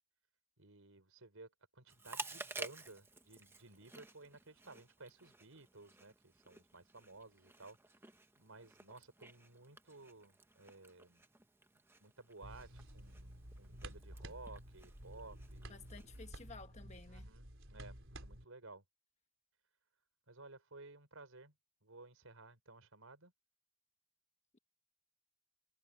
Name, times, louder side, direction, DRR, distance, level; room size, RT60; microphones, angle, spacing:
voice 1, 0.6-7.9 8.4-11.2 12.0-15.9 17.1-18.8 20.3-21.5 21.8-23.3, right 3 dB, 80° right, 4.5 m, -56 dB
Chewing mastication, 1.9-16.5, right 3 dB, 10° right, 1.1 m, -53 dB
sound 1, 12.4-18.4, right 1 dB, 65° right, 4.8 m, -52 dB
voice 2, 15.7-17.3, left 4 dB, 30° left, 1.3 m, -54 dB
head